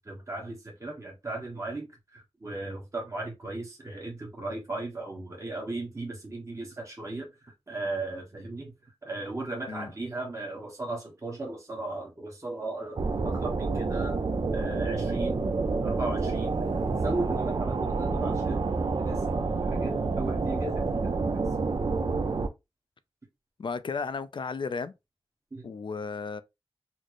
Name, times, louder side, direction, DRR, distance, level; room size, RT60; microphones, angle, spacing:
voice 1, 0.1-1.9 2.1-7.3 7.7-8.7 9.0-14.2 14.5-15.4 15.8-16.6 17.0-18.6 19.0-21.4 25.5-25.7, right 2 dB, 30° right, 1.2 m, -36 dB
sound 1, 13.0-22.5, right 4 dB, 50° right, 0.5 m, -28 dB
voice 2, 23.6-24.9 25.6-26.4, left 5 dB, 55° left, 0.4 m, -34 dB
4.2 x 2.0 x 3.0 m
wide cardioid pair, 65°, 10 cm